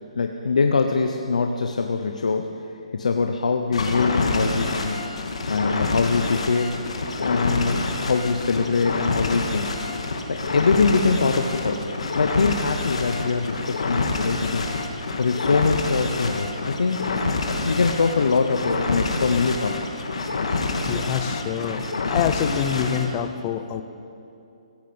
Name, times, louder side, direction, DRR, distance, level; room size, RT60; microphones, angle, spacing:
voice 1, 0.2-2.6 2.9-5.1 5.5-6.8 7.2-9.7 10.3-17.1 17.5-19.8, left 4 dB, 80° left, 5 dB, 0.9 m, -23 dB
sound 1, 3.7-23.1, left 3 dB, 60° left, 1.9 m, -27 dB
voice 2, 20.9-23.8, left 9 dB, 15° left, 9 dB, 0.5 m, -26 dB
16.0 x 14.5 x 5.5 m, 2.7 s
hypercardioid pair, 180°, 4 cm